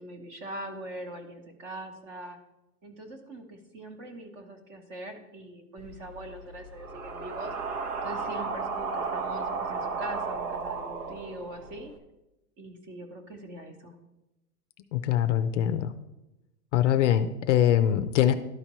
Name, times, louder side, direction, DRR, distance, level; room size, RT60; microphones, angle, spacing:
voice 1, 0.0-2.4 2.8-11.9 12.6-14.0, right 1 dB, 25° right, 5 dB, 1.0 m, -42 dB
sound 1, 5.8-11.9, right 4 dB, 70° right, 1.3 m, -34 dB
voice 2, 14.9-15.9 16.7-18.3, left 11 dB, 50° left, 11 dB, 0.5 m, -23 dB
12.5 x 4.3 x 3.0 m, 0.96 s
hypercardioid pair, 145°, 46 cm